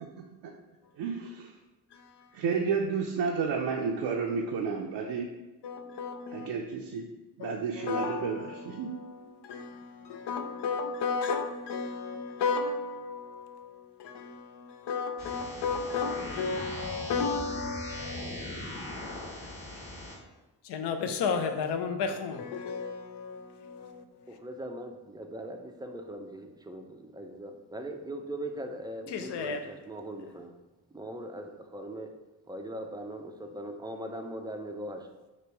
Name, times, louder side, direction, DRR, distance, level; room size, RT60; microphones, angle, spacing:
voice 1, 1.0-1.5 2.3-5.3 6.3-7.1 7.4-8.9, right 5 dB, 75° right, 0.6 m, -31 dB
voice 2, 1.9-2.3 5.6-6.5 7.4-19.4 20.6-24.4 29.1-29.7, left 5 dB, 75° left, 0.6 m, -34 dB
sound 1, 15.2-20.2, left 1 dB, 55° left, 1.3 m, -40 dB
voice 3, 24.3-30.5 30.9-32.1 32.5-35.1, right 1 dB, 10° right, 0.4 m, -40 dB
3.0 x 3.0 x 4.5 m
cardioid pair, 75°, 42 cm